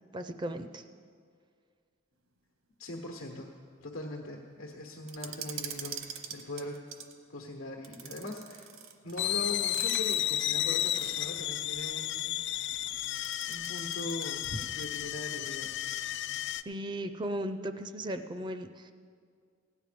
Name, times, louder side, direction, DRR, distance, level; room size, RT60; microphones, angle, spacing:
voice 1, 0.1-0.8 16.7-18.9, right 1 dB, 20° right, 9 dB, 0.4 m, -36 dB
voice 2, 2.8-3.5 3.8-6.8 7.3-8.7 9.0-12.3 13.5-15.7, left 1 dB, 85° left, 1 dB, 1.1 m, -40 dB
sound 1, 5.1-7.2 7.8-11.4 13.0-15.1 15.3-15.4 16.0-16.4, right 8 dB, 75° right, 0.9 m, -44 dB
sound 2, 9.2-16.6, left 12 dB, 55° left, 0.3 m, -33 dB
16.0 x 9.2 x 5.1 m, 2.1 s
head